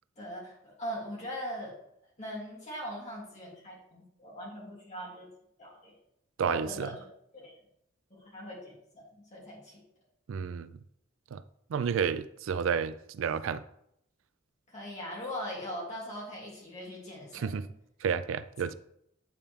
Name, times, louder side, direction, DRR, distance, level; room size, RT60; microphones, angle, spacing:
voice 1, 0.2-1.8 2.2-5.3 5.6-5.9 6.4-6.9 7.3-7.6 8.1-9.8 14.7-17.7, equal, 35° left, 2.9 m, -41 dB
voice 2, 6.4-7.0 10.3-10.8 11.3-11.4 11.7-13.6 17.3-17.7 18.0-18.7, right 6 dB, 85° right, 0.4 m, -31 dB
8.7 x 4.4 x 3.5 m
head